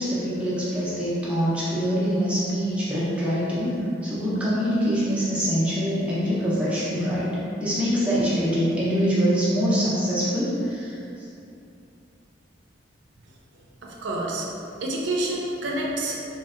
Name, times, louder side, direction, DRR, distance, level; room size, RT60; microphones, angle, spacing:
voice 1, 0.0-3.7 4.0-7.3 7.6-11.0, equal, 5° right, -10 dB, 0.6 m, -24 dB
voice 2, 13.8-14.5 14.8-16.3, right 1 dB, 75° right, -2 dB, 0.5 m, -28 dB
3.2 x 2.6 x 2.4 m, 2.7 s
head